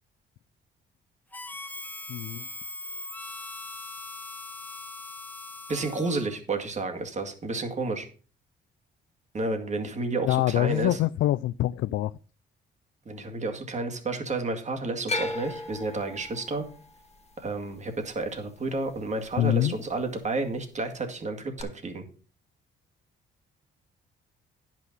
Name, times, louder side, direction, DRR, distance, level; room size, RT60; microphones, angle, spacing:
Harmonica, 1.3-6.4, left 2 dB, 10° left, 0.6 m, -40 dB
voice 1, 2.1-2.5 10.2-12.1 19.4-19.8, left 14 dB, 75° left, 0.4 m, -25 dB
voice 2, 5.7-8.1 9.3-11.0 13.1-16.6 17.4-22.0, right 3 dB, 35° right, 2.1 m, -31 dB
sound 1, 15.1-19.3 19.6-20.3 21.6-21.7, left 2 dB, 30° left, 1.5 m, -36 dB
10.0 x 6.1 x 5.4 m
cardioid pair, 90°, 20 cm